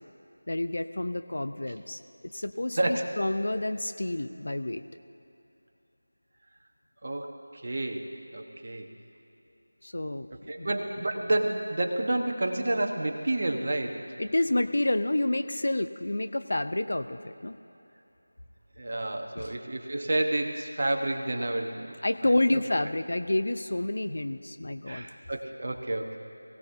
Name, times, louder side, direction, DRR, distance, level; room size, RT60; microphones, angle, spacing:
voice 1, 0.5-4.8 9.8-10.3 10.6-10.7 14.2-17.6 19.3-19.5 22.0-25.1, left 1 dB, 55° left, 10 dB, 0.6 m, -29 dB
voice 2, 2.8-3.1 7.0-8.9 10.5-14.0 18.8-21.9 22.2-22.6 24.9-26.2, right 1 dB, 45° right, 4 dB, 1.2 m, -30 dB
22.5 x 17.0 x 2.8 m, 2.9 s
figure-of-eight pair, 170°, 0 cm